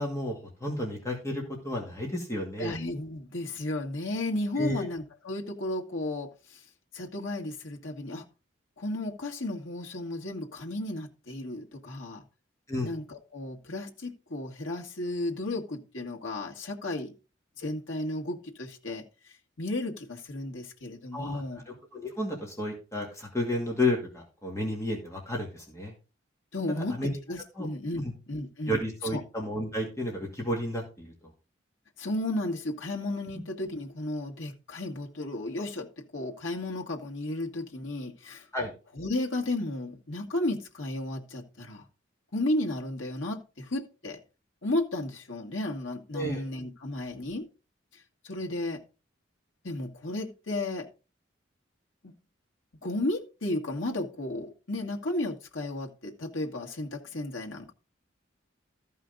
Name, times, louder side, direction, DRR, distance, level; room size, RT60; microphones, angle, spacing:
voice 1, 0.0-2.8 4.6-4.9 12.7-12.9 21.1-25.9 26.8-27.1 27.6-27.7 28.0-28.1 28.7-31.1 38.5-38.7 46.1-46.4, left 1 dB, 15° left, 2.3 m, -32 dB
voice 2, 2.6-6.6 6.9-8.3 8.8-12.3 12.8-17.1 17.6-19.0 19.6-21.6 26.5-28.8 29.1-29.2 32.0-38.5 38.9-41.8 42.3-44.2 44.6-47.5 47.9-48.8 49.6-50.9 52.0-52.1 52.8-57.7, left 1 dB, 80° left, 1.9 m, -33 dB
14.0 x 5.6 x 3.9 m
head